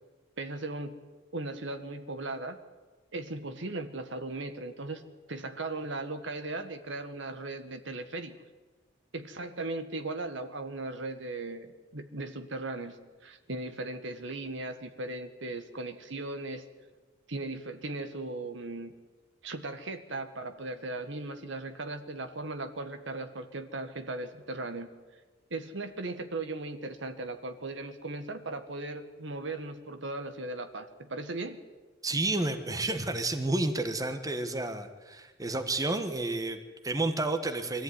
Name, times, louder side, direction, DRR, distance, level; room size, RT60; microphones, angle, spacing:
voice 1, 0.4-0.9 1.3-2.6 3.1-5.0 5.3-8.4 9.1-11.7 11.9-13.0 13.2-16.6 17.3-18.9 19.4-24.9 25.5-31.6, right 2 dB, 65° right, 8 dB, 1.7 m, -37 dB
voice 2, 32.0-37.8, right 2 dB, 20° right, 7 dB, 1.4 m, -31 dB
23.5 x 14.5 x 9.8 m, 1.3 s
head